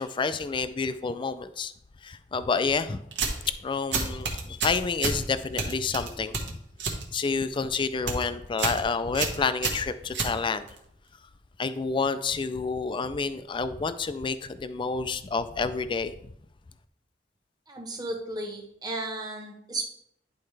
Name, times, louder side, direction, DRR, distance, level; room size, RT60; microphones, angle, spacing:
voice 1, 0.0-1.7 2.0-3.0 3.6-6.6 7.1-10.7 11.6-16.3, left 4 dB, 30° left, 11 dB, 0.4 m, -29 dB
sound 1, 3.1-3.5 3.9-5.2 5.6-7.0 7.4-7.7 7.9-8.2 8.6-8.8 9.1-10.8, right 4 dB, 85° right, 1.3 m, -29 dB
voice 2, 17.7-19.9, right 2 dB, 25° right, 1 dB, 1.2 m, -34 dB
10.5 x 4.3 x 3.3 m, 0.72 s
head